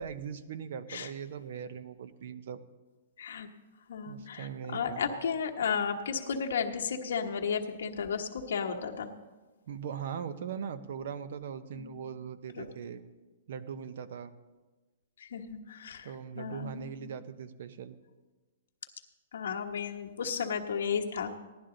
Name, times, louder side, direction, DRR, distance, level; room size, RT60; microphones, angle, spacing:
voice 1, 0.0-2.6 4.1-5.0 9.7-13.0 13.5-14.3 16.0-18.0, right 7 dB, 45° right, 14 dB, 0.7 m, -40 dB
voice 2, 3.9-9.1 11.7-12.0 12.6-12.7 15.2-16.1 16.4-17.1 19.3-21.3, left 6 dB, 65° left, 2 dB, 1.2 m, -34 dB
16.5 x 11.5 x 3.9 m, 1.2 s
hypercardioid pair, 180°, 0 cm